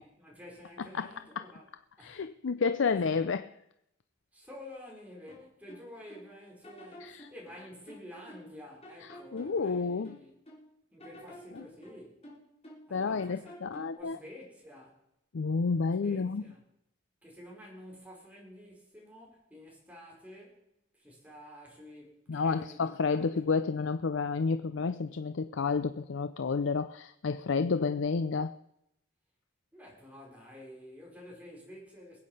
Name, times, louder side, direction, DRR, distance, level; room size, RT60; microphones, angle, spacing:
voice 1, 0.0-1.7 2.0-2.2 2.8-3.1 4.3-10.3 10.9-12.2 12.9-13.6 13.9-15.0 16.0-16.6 17.2-20.7 20.9-23.2 29.7-32.2, left 1 dB, 10° right, 4.5 m, -50 dB
voice 2, 2.0-3.5 7.0-7.3 9.3-10.2 11.5-11.6 12.9-14.2 15.3-16.4 22.3-28.5, left 4 dB, 70° left, 0.5 m, -30 dB
sound 1, 5.3-6.3 6.6-8.6 8.8-10.7 11.0-12.9 13.2-14.0, equal, 30° left, 3.8 m, -51 dB
21.5 x 8.5 x 5.5 m
head